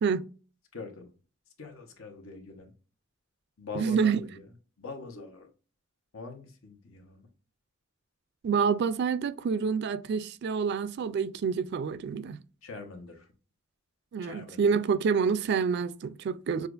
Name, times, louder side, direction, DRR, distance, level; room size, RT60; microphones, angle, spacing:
voice 1, 0.7-1.1 1.6-2.7 3.6-4.4 4.8-5.5 6.1-7.3 12.6-13.3 14.2-14.6, left 4 dB, 85° left, 1.1 m, -43 dB
voice 2, 3.8-4.2 8.4-12.4 14.1-16.7, right 6 dB, 55° right, 0.3 m, -27 dB
6.5 x 2.4 x 2.5 m
head